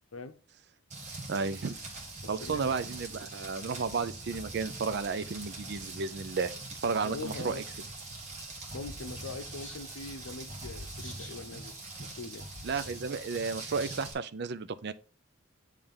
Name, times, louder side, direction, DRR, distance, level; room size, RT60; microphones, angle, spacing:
Rain, 0.9-14.1, right 2 dB, 35° right, 1.8 m, -43 dB
voice 1, 1.3-1.7 2.3-6.5 6.8-7.6 12.6-14.9, right 4 dB, 50° right, 0.4 m, -33 dB
voice 2, 2.2-2.7 7.0-7.6 8.7-12.5, left 3 dB, 75° left, 0.7 m, -42 dB
sound 1, 7.1-14.1, equal, 10° left, 2.6 m, -54 dB
8.7 x 3.3 x 3.6 m
head